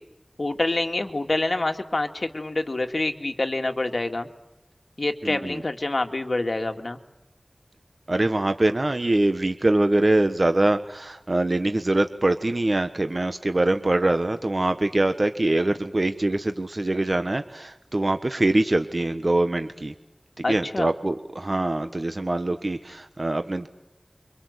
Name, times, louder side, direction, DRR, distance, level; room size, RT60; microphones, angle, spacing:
voice 1, 0.4-4.3 5.0-7.0 20.4-20.9, left 2 dB, 65° left, 5 dB, 2.3 m, -26 dB
voice 2, 5.2-5.6 8.1-19.9 20.4-23.7, right 2 dB, 55° right, 9 dB, 1.3 m, -23 dB
29.5 x 25.0 x 8.2 m, 0.95 s
wide cardioid pair, 50°, 0 cm